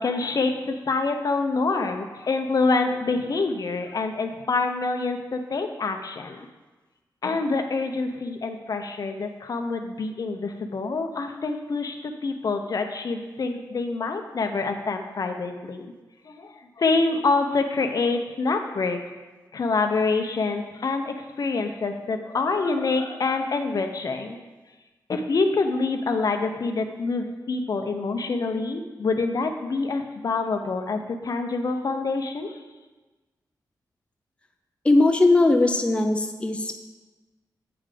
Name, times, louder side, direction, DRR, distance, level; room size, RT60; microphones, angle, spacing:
voice 1, 0.0-6.5 7.2-15.9 16.2-19.0 19.5-24.4 25.1-32.6, left 3 dB, 55° left, 6 dB, 0.7 m, -26 dB
voice 2, 34.8-36.9, left 2 dB, 15° left, 4 dB, 0.5 m, -19 dB
8.6 x 3.7 x 5.0 m, 1.2 s
cardioid pair, 80°, 7 cm